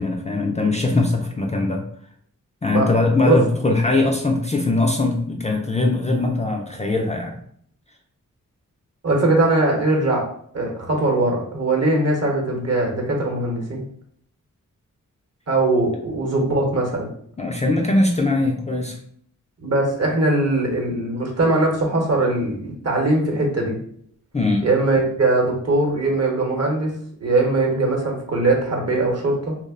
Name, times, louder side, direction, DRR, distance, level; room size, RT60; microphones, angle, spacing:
voice 1, 0.0-1.8 2.6-7.4 17.4-19.0 24.3-24.7, left 2 dB, 20° left, 1 dB, 0.3 m, -21 dB
voice 2, 9.0-10.3 10.5-13.8 15.5-17.1 19.6-23.8 24.6-27.0 27.2-29.6, right 2 dB, 50° right, 0 dB, 0.9 m, -20 dB
2.3 x 2.0 x 3.5 m, 0.63 s
cardioid pair, 65°, 32 cm